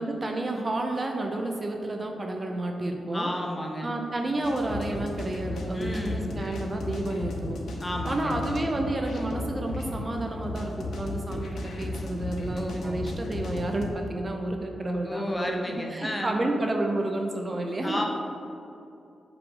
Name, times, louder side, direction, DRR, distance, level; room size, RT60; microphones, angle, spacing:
voice 1, 0.0-3.3 3.8-7.6 8.1-15.6 15.9-18.1, right 2 dB, 30° right, 2 dB, 0.5 m, -30 dB
voice 2, 3.1-4.0 5.7-6.3 7.8-8.4 12.5-13.1 15.1-16.4 17.8-18.1, left 1 dB, 15° left, 1 dB, 0.7 m, -32 dB
sound 1, 4.4-13.9, left 2 dB, 85° left, 0.8 m, -35 dB
6.0 x 4.8 x 3.8 m, 2.7 s
wide cardioid pair, 120°, 0 cm